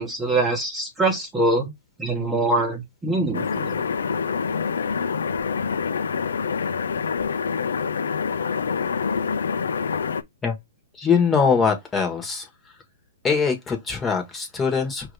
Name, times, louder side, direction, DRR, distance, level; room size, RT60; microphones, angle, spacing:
voice 1, 0.0-1.7 2.0-3.8, right 2 dB, 10° right, 1.2 m, -24 dB
sound 1, 3.3-10.2, left 6 dB, 80° left, 0.5 m, -26 dB
voice 2, 10.9-12.5 13.2-15.1, left 5 dB, 15° left, 1.3 m, -22 dB
5.4 x 2.7 x 3.3 m
hypercardioid pair, 125°, 0 cm